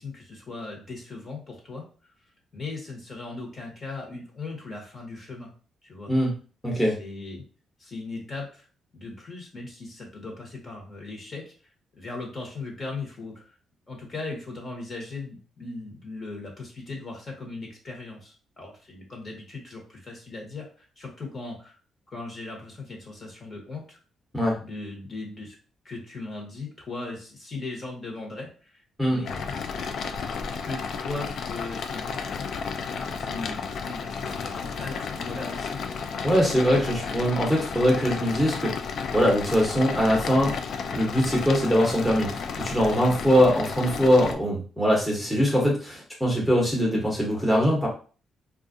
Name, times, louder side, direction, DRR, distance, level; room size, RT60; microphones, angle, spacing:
voice 1, 0.0-1.8 2.5-5.5 5.8-6.1 6.7-7.4 7.8-8.7 8.9-11.5 12.0-13.5 13.9-21.8 22.1-24.0 24.6-25.5 25.8-29.7 30.5-32.1 32.8-35.8, left 3 dB, 35° left, 0 dB, 1.1 m, -38 dB
voice 2, 6.6-7.0 24.3-24.6 29.0-29.2 36.2-38.7 39.1-40.5 40.9-42.3 42.6-47.9, equal, ahead, -4 dB, 0.9 m, -22 dB
sound 1, 29.2-44.3, left 5 dB, 60° left, 0.4 m, -33 dB
3.8 x 2.4 x 2.6 m, 0.39 s
cardioid pair, 125°, 0 cm